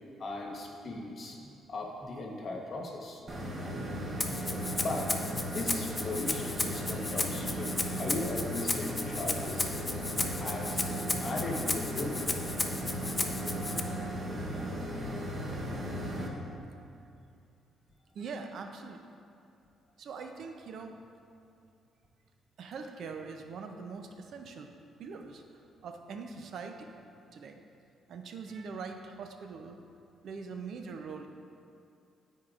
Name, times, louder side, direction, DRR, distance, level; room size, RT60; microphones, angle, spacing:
voice 1, 0.2-3.3 4.8-5.2 5.5-9.7 10.4-12.2, left 2 dB, 50° left, -1 dB, 1.3 m, -38 dB
sound 1, 3.3-16.3, equal, 30° right, 1.0 m, -36 dB
Rattle (instrument), 4.2-13.8, left 2 dB, 20° left, 0.5 m, -34 dB
voice 2, 18.1-19.1 20.0-21.0 22.6-24.7 25.0-26.9 27.3-27.6 28.1-29.8 30.2-31.3, right 5 dB, 65° right, 5 dB, 0.5 m, -42 dB
12.5 x 4.6 x 2.5 m, 2.6 s
cardioid pair, 90°, 0 cm